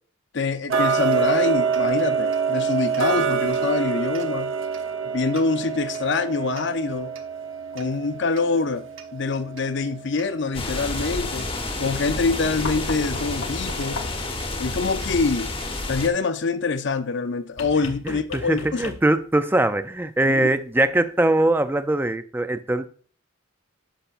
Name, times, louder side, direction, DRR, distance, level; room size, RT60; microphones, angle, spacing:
voice 1, 0.3-4.5 5.1-7.1 7.7-8.9 9.1-11.5 11.8-14.0 14.6-15.5 15.9-19.0 20.3-20.5, left 4 dB, 60° left, 0.7 m, -25 dB
Tick-tock, 0.7-11.5 12.0-12.1 12.6-12.7 13.2-13.3 13.8-13.9 14.4-14.5 15.0-15.1 15.6-15.7, right 6 dB, 75° right, 1.0 m, -26 dB
sound 1, 10.5-16.1, left 2 dB, 25° left, 1.1 m, -30 dB
sound 2, 12.6-14.4 17.6-19.3 20.9-21.0, left 4 dB, 85° left, 1.0 m, -37 dB
voice 2, 18.0-22.9, right 1 dB, 10° right, 0.4 m, -22 dB
10.0 x 6.7 x 2.5 m
head